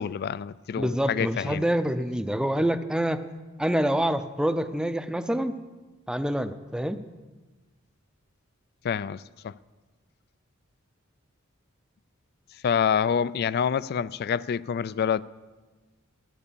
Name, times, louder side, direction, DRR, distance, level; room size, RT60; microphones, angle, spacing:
voice 1, 0.0-1.6 8.8-9.5 12.6-15.2, left 7 dB, 50° left, 0.3 m, -27 dB
voice 2, 0.8-3.2 3.6-5.5 6.1-7.0, right 1 dB, 5° right, 0.6 m, -26 dB
14.0 x 9.6 x 6.9 m
head